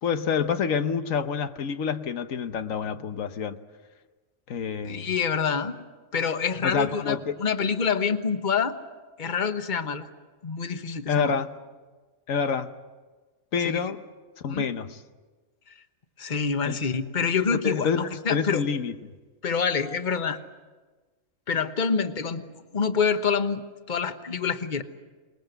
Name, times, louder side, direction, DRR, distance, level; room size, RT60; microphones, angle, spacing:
voice 1, 0.0-3.6 4.5-5.1 6.6-7.3 11.1-11.5 12.3-12.7 13.5-14.0 14.4-14.9 16.7-16.8 17.6-18.9, left 6 dB, 90° left, 9 dB, 1.4 m, -27 dB
voice 2, 4.8-5.8 6.1-8.8 9.2-10.1 10.4-11.4 13.6-13.9 14.5-14.7 16.2-18.6 19.4-20.4 21.5-22.4 22.7-23.6 23.9-24.8, left 6 dB, 40° left, 8 dB, 1.2 m, -26 dB
26.5 x 20.5 x 8.0 m, 1.3 s
omnidirectional pair, 1.3 m